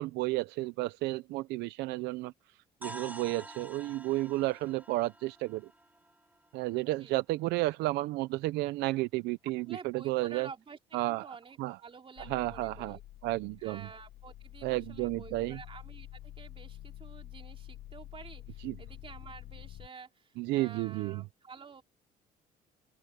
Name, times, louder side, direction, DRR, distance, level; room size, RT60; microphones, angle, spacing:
voice 1, 0.0-2.3 2.8-5.7 6.5-10.5 10.9-11.3 11.6-11.8 12.3-13.8 14.6-15.6 18.6-18.8 20.4-21.2, right 19 dB, 90° right, 0.7 m, -32 dB
sound 1, 2.8-6.8, right 2 dB, 10° right, 3.0 m, -48 dB
voice 2, 9.7-10.8 11.1-13.0 13.6-21.8, right 5 dB, 30° right, 3.3 m, -50 dB
sound 2, 12.2-19.9, left 14 dB, 70° left, 0.9 m, -48 dB
cardioid pair, 110°, 17 cm